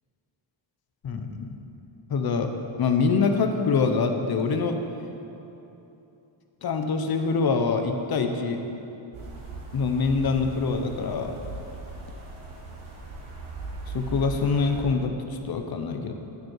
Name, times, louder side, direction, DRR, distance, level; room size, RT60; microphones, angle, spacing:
voice 1, 1.0-1.6 2.1-2.5 2.8-4.8 6.6-8.6 9.7-11.3 13.9-16.1, left 4 dB, 50° left, 6 dB, 0.9 m, -25 dB
sound 1, 9.1-14.8, right 3 dB, 80° right, 2.0 m, -39 dB
9.6 x 9.2 x 4.7 m, 2.9 s
wide cardioid pair, 130°, 48 cm